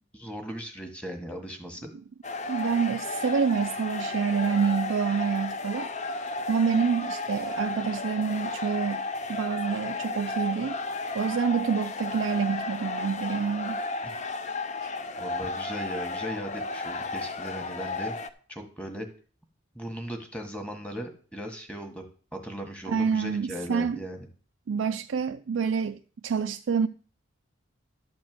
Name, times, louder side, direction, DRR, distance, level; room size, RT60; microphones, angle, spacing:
voice 1, 0.2-1.9 14.0-14.1 15.2-18.2 18.5-19.1 19.7-22.0 22.3-24.2, equal, 5° left, 1.5 m, -37 dB
sound 1, 2.2-18.3, left 3 dB, 35° left, 0.6 m, -33 dB
voice 2, 2.5-5.9 6.5-10.8 11.1-13.8 14.8-14.9 22.9-24.0 24.7-26.9, right 6 dB, 70° right, 0.4 m, -27 dB
12.0 x 4.3 x 7.6 m
head